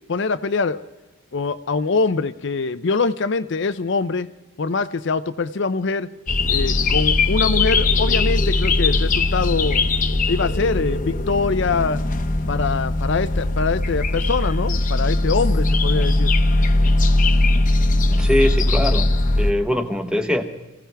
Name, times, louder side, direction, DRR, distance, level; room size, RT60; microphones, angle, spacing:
voice 1, 0.1-0.8 1.3-4.3 4.6-6.1 6.5-9.9 10.3-12.0 12.5-16.3, left 4 dB, 55° left, 12 dB, 0.5 m, -23 dB
sound 1, 6.3-19.5, left 2 dB, 40° left, 0.9 m, -19 dB
voice 2, 18.1-19.1 19.3-20.4, left 1 dB, 5° right, 6 dB, 1.0 m, -22 dB
25.5 x 16.5 x 3.4 m, 1.1 s
head